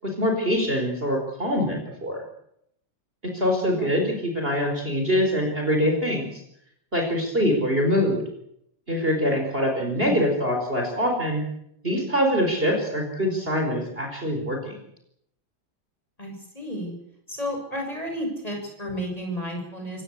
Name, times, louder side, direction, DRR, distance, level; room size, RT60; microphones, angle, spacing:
voice 1, 0.0-2.2 3.3-6.4 6.9-8.2 8.9-11.4 11.8-14.8, equal, 30° right, 1 dB, 4.8 m, -24 dB
voice 2, 16.2-16.9 17.3-20.0, equal, 20° left, 2 dB, 6.8 m, -32 dB
26.5 x 17.0 x 8.3 m, 0.75 s
omnidirectional pair, 2.1 m